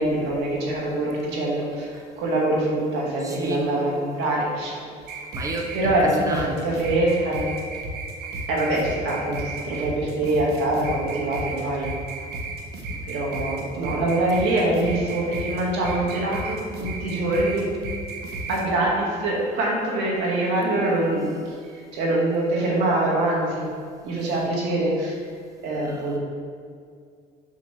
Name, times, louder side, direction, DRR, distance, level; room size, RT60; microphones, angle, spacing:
voice 1, 0.0-4.8 5.7-7.5 8.5-11.9 13.0-17.7 18.5-21.3 21.7-23.7 24.0-25.2 25.6-26.2, right 1 dB, 90° right, -3 dB, 2.2 m, -24 dB
voice 2, 3.2-3.8 5.3-6.7 12.9-13.0 14.5-14.6 20.8-21.2 24.1-24.3 25.7-26.2, right 1 dB, 20° right, 1 dB, 1.0 m, -33 dB
sound 1, 5.0-18.6, right 2 dB, 70° right, 1.3 m, -33 dB
6.1 x 6.0 x 5.7 m, 2.2 s
cardioid pair, 110°, 17 cm